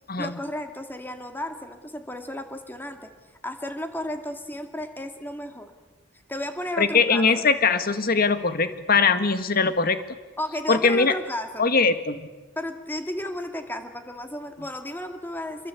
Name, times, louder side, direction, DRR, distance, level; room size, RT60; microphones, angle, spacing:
voice 1, 0.2-3.1 3.4-5.7 6.3-7.4 10.4-11.7 12.6-15.7, left 1 dB, 10° left, 6 dB, 2.3 m, -33 dB
voice 2, 6.8-10.0 10.7-11.1 11.6-12.2, left 4 dB, 45° left, 10 dB, 1.7 m, -21 dB
26.5 x 23.0 x 8.4 m, 1.3 s
head